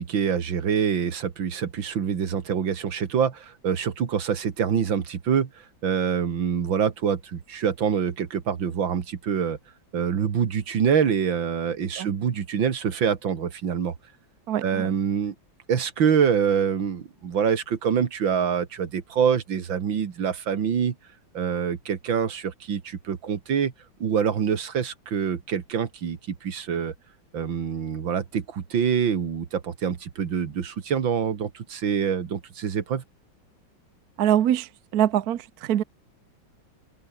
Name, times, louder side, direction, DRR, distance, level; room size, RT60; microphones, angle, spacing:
voice 1, 0.0-9.6 9.9-13.9 14.6-15.3 15.7-21.0 21.3-23.7 24.0-26.9 27.3-33.0, right 7 dB, 80° right, 2.6 m, -25 dB
voice 2, 14.5-14.9 34.2-35.8, right 11 dB, 60° right, 1.2 m, -24 dB
open air
omnidirectional pair, 2.1 m